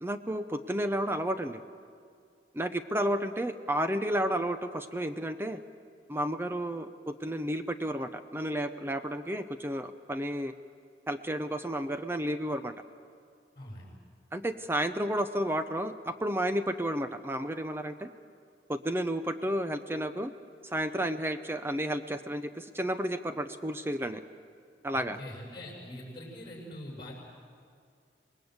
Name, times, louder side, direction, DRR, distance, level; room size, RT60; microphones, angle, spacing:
voice 1, 0.0-1.6 2.5-5.6 6.1-10.5 11.1-12.7 14.3-18.1 18.7-20.3 20.7-24.2 24.8-25.2, right 1 dB, 15° right, 10 dB, 0.6 m, -32 dB
voice 2, 13.6-13.9 24.9-27.1, left 1 dB, 25° left, -2 dB, 7.0 m, -43 dB
26.5 x 20.0 x 8.0 m, 2.3 s
head